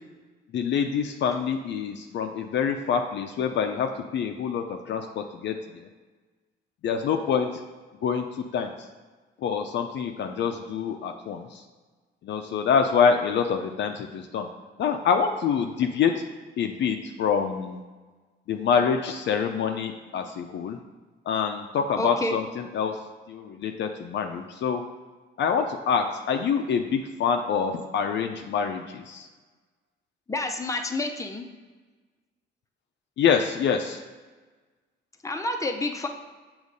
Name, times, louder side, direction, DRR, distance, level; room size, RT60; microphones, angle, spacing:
voice 1, 0.5-5.6 6.8-7.5 8.0-8.2 8.5-8.7 9.4-11.6 12.2-14.5 14.8-16.1 16.6-17.8 18.5-20.8 21.3-22.9 23.3-24.8 25.4-29.3 33.2-34.0, left 6 dB, 65° left, 5 dB, 0.5 m, -26 dB
voice 2, 22.0-22.4 30.3-31.5 35.2-36.1, left 2 dB, 15° left, 4 dB, 0.7 m, -29 dB
6.4 x 3.1 x 5.2 m, 1.3 s
cardioid pair, 90°, 20 cm